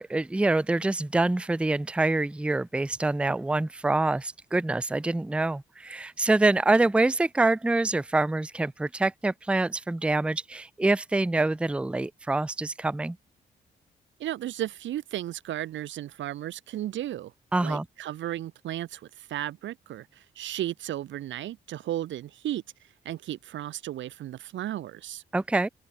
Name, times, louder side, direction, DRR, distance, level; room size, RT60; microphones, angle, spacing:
voice 1, 0.0-13.2 17.5-17.9 25.3-25.7, right 2 dB, 5° right, 0.4 m, -25 dB
voice 2, 14.2-17.3 17.6-25.2, right 13 dB, 65° right, 0.6 m, -34 dB
open air
hypercardioid pair, 40°, 21 cm